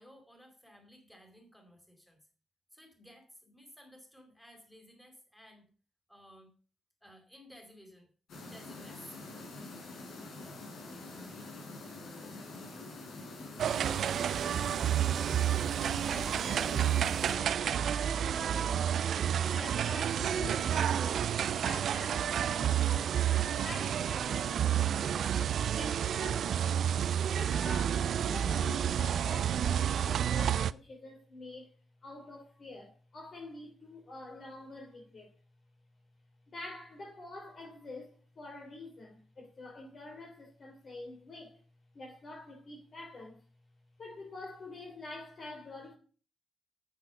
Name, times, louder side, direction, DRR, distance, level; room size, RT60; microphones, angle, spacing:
voice 1, 0.0-2.2 2.7-5.7 6.1-6.5 7.0-8.1 8.4-9.2, equal, 5° left, 4.4 m, -56 dB
sound 1, 8.3-17.3, left 2 dB, 70° left, 5.1 m, -46 dB
sound 2, 13.6-30.7, right 9 dB, 65° right, 0.5 m, -30 dB
voice 2, 16.1-18.8 19.5-21.3 21.6-23.3 23.6-25.4 25.7-26.9 27.3-31.7 32.0-35.3 36.5-41.6 41.9-43.4 44.0-46.0, left 2 dB, 40° left, 3.0 m, -46 dB
9.9 x 8.8 x 7.0 m
cardioid pair, 135°, 0 cm